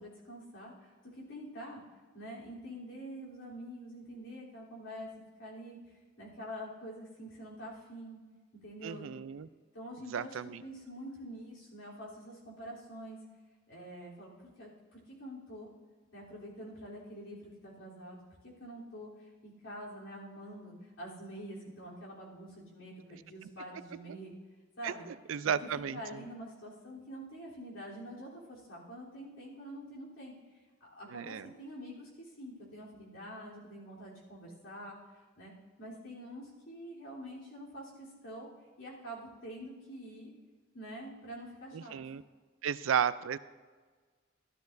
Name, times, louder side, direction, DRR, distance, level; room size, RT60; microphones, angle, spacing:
voice 1, 0.0-1.8 2.1-5.1 5.4-8.2 8.6-9.0 9.7-13.2 13.7-15.7 16.1-24.3 24.8-25.1 25.6-30.3 30.8-35.0 35.4-35.5 35.8-38.5 38.8-40.3 40.7-42.0, equal, 85° left, -5 dB, 3.4 m, -46 dB
voice 2, 8.8-9.5 10.1-10.6 24.8-26.2 31.1-31.5 41.7-42.2 42.6-43.4, right 8 dB, 80° right, 16 dB, 0.4 m, -34 dB
14.0 x 12.5 x 2.6 m, 1.4 s
head